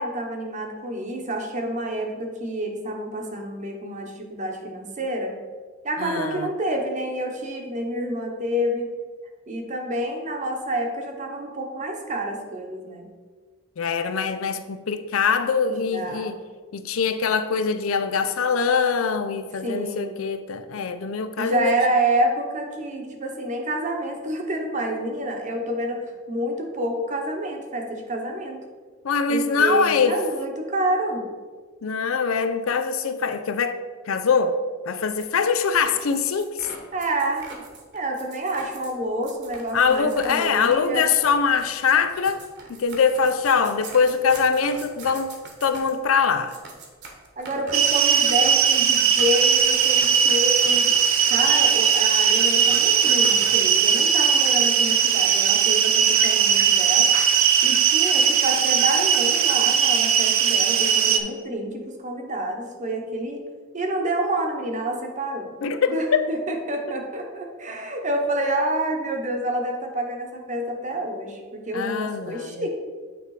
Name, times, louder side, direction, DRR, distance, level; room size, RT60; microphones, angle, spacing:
voice 1, 0.0-5.3 5.8-8.9 9.5-13.1 15.7-16.3 19.6-20.2 21.4-26.0 26.3-28.6 29.3-31.3 36.9-37.5 37.9-41.1 47.4-50.9 51.3-57.1 57.6-63.4 63.7-65.6 65.9-72.7, right 1 dB, 35° right, 1.0 m, -28 dB
voice 2, 6.0-6.5 13.8-16.3 16.7-21.8 29.0-30.2 31.8-33.8 34.1-34.6 34.9-36.7 39.7-42.4 42.7-45.3 45.6-46.6 65.6-66.2 71.7-72.6, left 5 dB, 85° left, 0.5 m, -23 dB
sound 1, 35.0-53.7, right 3 dB, 55° right, 1.2 m, -43 dB
sound 2, 47.7-61.2, right 7 dB, 75° right, 0.6 m, -19 dB
8.9 x 3.3 x 4.8 m
head